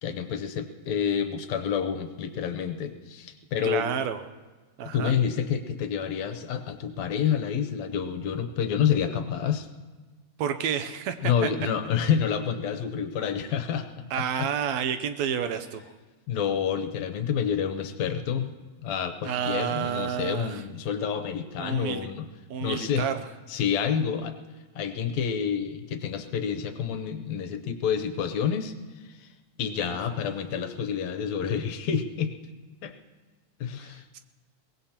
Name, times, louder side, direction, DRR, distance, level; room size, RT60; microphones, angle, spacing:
voice 1, 0.0-3.9 4.9-9.7 11.2-13.9 14.4-14.5 16.3-18.5 18.8-22.3 22.6-23.1 23.5-24.4 24.8-29.3 29.6-32.3 32.8-32.9 33.6-34.0, left 7 dB, 75° left, 7 dB, 2.0 m, -28 dB
voice 2, 3.6-4.2 4.8-5.1 10.4-11.5 14.1-15.9 19.3-20.6 21.6-22.1 22.5-23.2 29.9-30.0 33.8-34.2, right 8 dB, 75° right, 9 dB, 1.8 m, -30 dB
22.5 x 19.0 x 2.9 m, 1.3 s
omnidirectional pair, 3.4 m